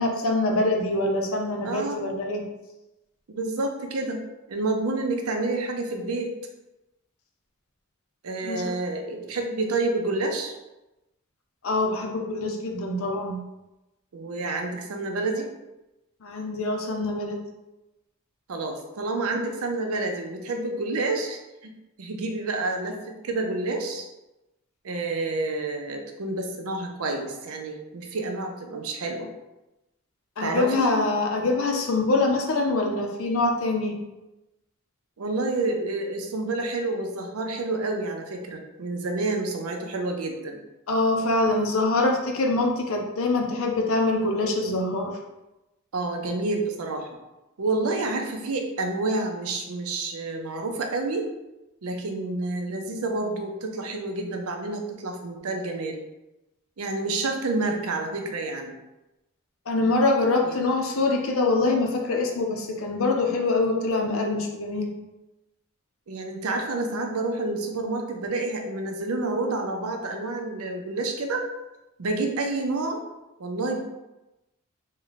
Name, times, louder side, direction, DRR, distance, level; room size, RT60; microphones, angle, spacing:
voice 1, 0.0-2.4 8.4-8.6 11.6-13.4 16.2-17.4 30.4-34.0 40.9-45.1 59.7-64.9, left 2 dB, 70° left, 2 dB, 0.6 m, -24 dB
voice 2, 1.6-2.0 3.3-4.2 4.5-6.3 8.2-10.6 14.1-15.5 18.5-21.7 22.0-24.1 24.8-29.3 30.4-30.9 35.2-40.6 45.9-47.1 47.6-51.3 51.8-56.0 56.8-58.7 60.4-60.6 66.1-71.4 72.0-73.0 73.4-73.8, right 2 dB, 90° right, 3 dB, 0.6 m, -29 dB
3.2 x 2.2 x 3.9 m, 0.99 s
head